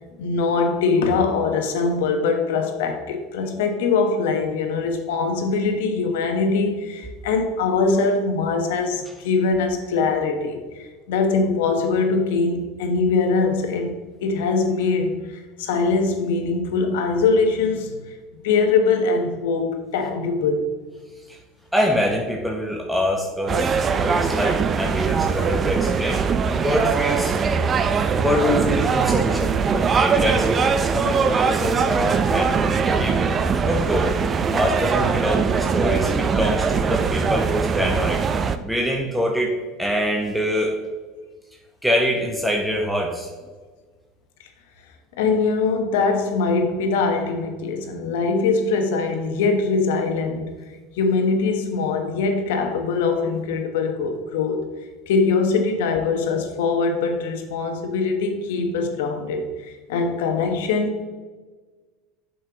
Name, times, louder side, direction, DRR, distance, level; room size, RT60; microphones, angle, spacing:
voice 1, 0.2-14.0 14.2-18.0 18.4-20.7 45.2-50.6 51.0-54.6 55.1-61.0, left 4 dB, 80° left, 5 dB, 1.0 m, -22 dB
voice 2, 21.7-26.2 26.6-27.4 28.2-33.2 33.6-34.1 34.5-38.2 38.6-40.8 41.8-43.3, equal, ahead, -1 dB, 1.0 m, -24 dB
sound 1, 23.5-38.6, right 5 dB, 35° right, 0.5 m, -21 dB
7.5 x 5.5 x 2.9 m, 1.4 s
hypercardioid pair, 85°, 0 cm